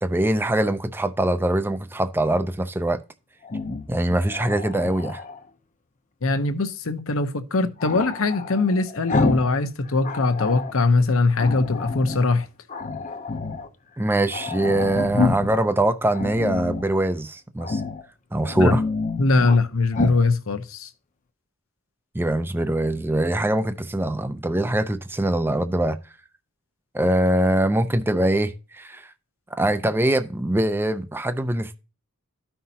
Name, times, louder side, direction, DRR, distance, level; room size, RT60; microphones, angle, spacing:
voice 1, 0.0-3.0 3.9-5.2 14.0-17.8 18.3-18.8 22.1-26.0 26.9-29.1 29.5-31.8, right 1 dB, 10° right, 0.4 m, -23 dB
Growling, 3.4-5.4 7.8-9.6 9.9-10.8 11.4-12.3 12.7-13.7 14.0-14.1 14.3-15.6 16.1-16.9 17.6-18.0 18.4-19.6 19.9-20.2, left 3 dB, 35° left, 0.6 m, -28 dB
voice 2, 6.2-12.5 18.6-18.8 19.2-20.9, left 3 dB, 65° left, 0.9 m, -21 dB
13.5 x 5.6 x 2.8 m
head